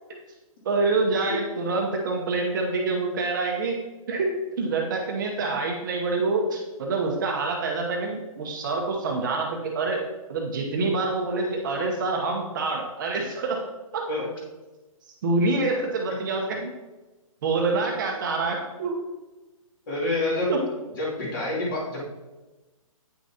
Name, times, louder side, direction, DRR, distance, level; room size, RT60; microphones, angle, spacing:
voice 1, 0.6-3.8 4.1-10.0 10.3-13.7 13.9-14.1 15.2-16.7 17.4-19.0 20.5-20.7, right 3 dB, 35° right, 0 dB, 0.9 m, -26 dB
voice 2, 19.9-20.6 21.0-22.1, left 2 dB, 35° left, -6 dB, 2.6 m, -28 dB
9.1 x 6.1 x 2.8 m, 1.1 s
hypercardioid pair, 170°, 18 cm